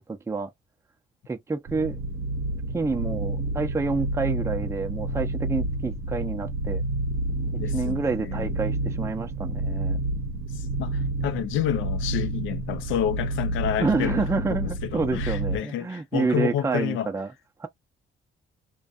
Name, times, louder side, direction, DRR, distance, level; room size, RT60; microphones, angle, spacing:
voice 1, 0.1-0.5 1.3-2.0 2.7-6.8 7.7-10.0 13.8-17.3 17.6-17.7, right 4 dB, 15° right, 0.5 m, -28 dB
sound 1, 1.7-15.6, right 2 dB, 75° right, 0.6 m, -29 dB
voice 2, 7.6-8.5 10.5-14.2 14.5-17.1, left 10 dB, 80° left, 0.4 m, -29 dB
2.6 x 2.2 x 2.4 m
cardioid pair, 90°, 20 cm